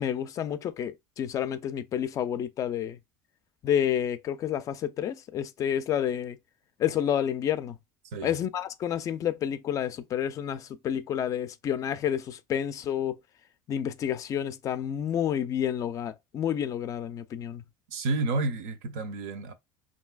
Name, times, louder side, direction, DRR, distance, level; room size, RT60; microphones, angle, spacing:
voice 1, 0.0-3.0 3.6-6.4 6.8-7.8 8.2-13.2 13.7-17.6, left 9 dB, 35° left, 0.3 m, -29 dB
voice 2, 17.9-19.5, right 3 dB, 75° right, 0.7 m, -30 dB
3.2 x 2.7 x 2.3 m
supercardioid pair, 130°, 10 cm